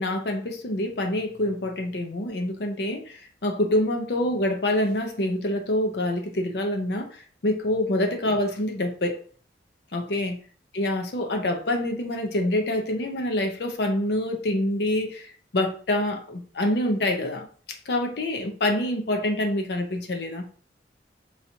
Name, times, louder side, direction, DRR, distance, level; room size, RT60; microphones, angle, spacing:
voice 1, 0.0-7.1 7.4-9.2 9.9-10.4 10.7-15.3 15.5-17.5 17.9-20.4, left 1 dB, 60° left, 0.6 m, -26 dB
4.7 x 2.7 x 2.8 m
head